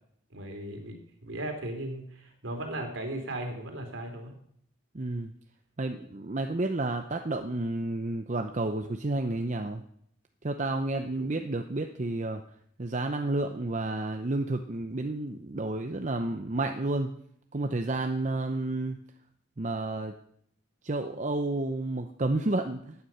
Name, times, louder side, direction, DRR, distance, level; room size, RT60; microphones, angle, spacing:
voice 1, 0.3-1.0 1.2-4.3 11.2-11.3, right 1 dB, 75° right, 4 dB, 3.0 m, -36 dB
voice 2, 4.9-5.3 5.8-9.8 10.4-12.4 12.8-17.1 17.5-19.0 19.6-20.1 20.8-22.9, right 2 dB, 35° right, 5 dB, 0.7 m, -30 dB
14.5 x 9.6 x 5.6 m, 0.66 s
head